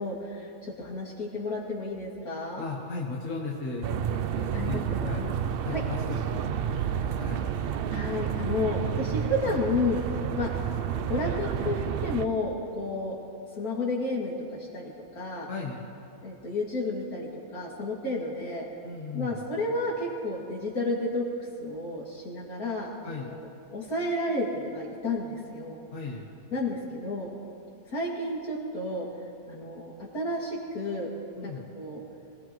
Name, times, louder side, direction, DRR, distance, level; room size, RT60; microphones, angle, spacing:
voice 1, 0.0-2.6 4.5-5.3 5.7-5.8 7.9-10.0 10.4-10.5 11.1-13.2 13.5-15.5 16.2-18.7 19.1-21.3 21.6-23.4 23.7-25.8 26.5-27.3 27.9-29.1 29.5-31.1 31.4-32.0, left 2 dB, 75° left, -3 dB, 3.0 m, -31 dB
voice 2, 2.6-3.9 4.4-5.3 5.6-6.5 6.8-7.4 15.5-15.8 18.8-19.4 23.0-23.3 25.9-26.3 31.4-31.6, left 4 dB, 55° left, -3 dB, 1.8 m, -36 dB
sound 1, 3.8-12.3, right 8 dB, 85° right, 0.5 m, -30 dB
25.0 x 18.0 x 3.1 m, 2.7 s
omnidirectional pair, 1.6 m